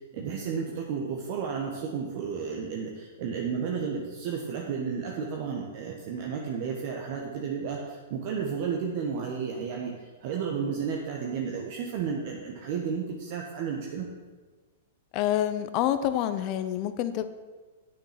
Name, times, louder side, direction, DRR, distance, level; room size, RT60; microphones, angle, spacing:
voice 1, 0.1-14.1, right 6 dB, 50° right, -1 dB, 1.3 m, -32 dB
voice 2, 15.1-17.2, left 11 dB, 40° left, 11 dB, 0.7 m, -27 dB
8.9 x 6.6 x 5.9 m, 1.3 s
hypercardioid pair, 135°, 0 cm